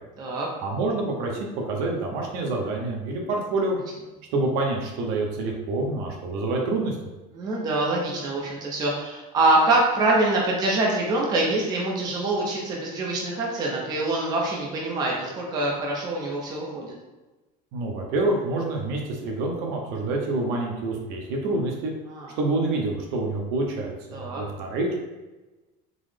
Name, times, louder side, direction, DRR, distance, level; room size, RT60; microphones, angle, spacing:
voice 1, 0.6-3.8 4.3-7.0 17.7-21.9 22.4-25.0, right 2 dB, 70° right, 0 dB, 0.7 m, -27 dB
voice 2, 7.3-16.9 22.1-22.3 24.1-24.4, right 2 dB, 20° right, -2 dB, 0.4 m, -25 dB
3.8 x 2.0 x 3.2 m, 1.1 s
cardioid pair, 170°, 18 cm